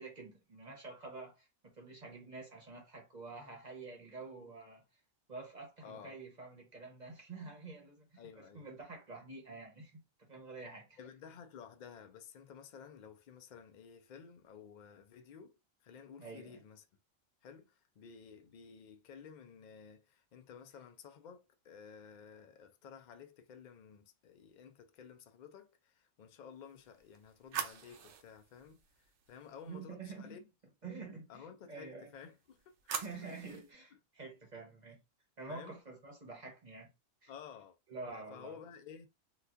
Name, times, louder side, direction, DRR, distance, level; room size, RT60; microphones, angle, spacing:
voice 1, 0.0-4.8 5.3-11.0 16.2-16.6 29.7-30.4 30.8-32.1 32.9-35.0 35.4-36.9 37.2-37.3 37.9-38.6, right 3 dB, 40° right, 0.8 m, -48 dB
voice 2, 5.8-6.2 8.2-8.7 11.0-16.9 17.4-30.4 31.3-33.4 35.5-35.8 37.3-37.8 38.1-39.1, left 7 dB, 75° left, 0.4 m, -53 dB
sound 1, 26.7-29.8 32.2-33.7, right 7 dB, 65° right, 0.9 m, -45 dB
3.9 x 2.4 x 2.4 m
omnidirectional pair, 1.3 m